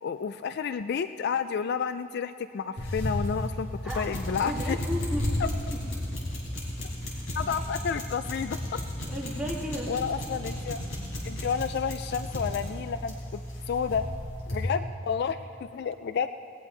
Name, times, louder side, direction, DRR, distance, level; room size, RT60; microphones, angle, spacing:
voice 1, 0.0-3.7 4.0-4.8 5.4-5.5 7.3-8.8 9.9-10.8 11.2-13.4 13.7-14.1 14.5-16.3, left 6 dB, 50° left, 11 dB, 0.3 m, -30 dB
sound 1, 2.8-14.7, left 1 dB, 75° left, 3.9 m, -33 dB
voice 2, 3.8-4.1 4.4-5.3 5.7-5.8 9.1-9.9, equal, 5° right, -5 dB, 2.2 m, -34 dB
19.0 x 19.0 x 3.2 m, 2.5 s
head